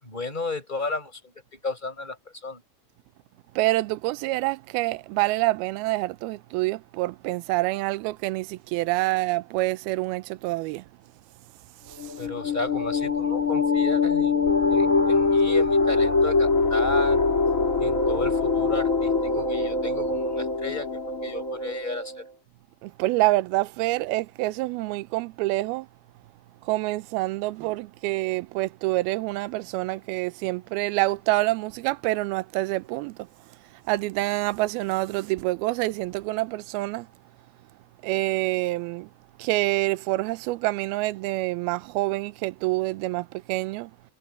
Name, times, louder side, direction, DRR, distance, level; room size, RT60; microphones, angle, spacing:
voice 1, 0.0-2.6 12.2-14.4 14.7-17.2 17.8-20.9 21.2-22.3, left 2 dB, 10° left, 6.5 m, -33 dB
voice 2, 3.6-10.8 11.9-12.1 22.8-25.9 26.6-33.3 33.9-37.1 38.0-39.1 39.4-43.9, right 19 dB, 80° right, 2.4 m, -27 dB
sound 1, 12.0-22.2, left 4 dB, 25° left, 1.8 m, -23 dB
omnidirectional pair, 4.9 m